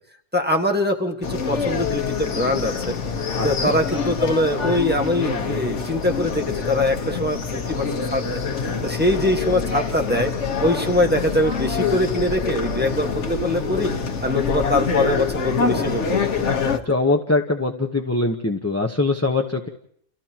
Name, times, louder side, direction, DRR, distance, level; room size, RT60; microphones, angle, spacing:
voice 1, 0.3-2.9 3.4-8.4 8.8-10.3 10.6-13.9 14.2-16.5, left 1 dB, 10° right, 1 dB, 1.6 m, -23 dB
sound 1, 1.2-16.8, left 5 dB, 75° left, 1.6 m, -25 dB
voice 2, 3.4-3.7 16.8-19.7, left 2 dB, 15° left, 2 dB, 1.0 m, -22 dB
30.0 x 29.5 x 3.0 m, 0.64 s
omnidirectional pair, 1.2 m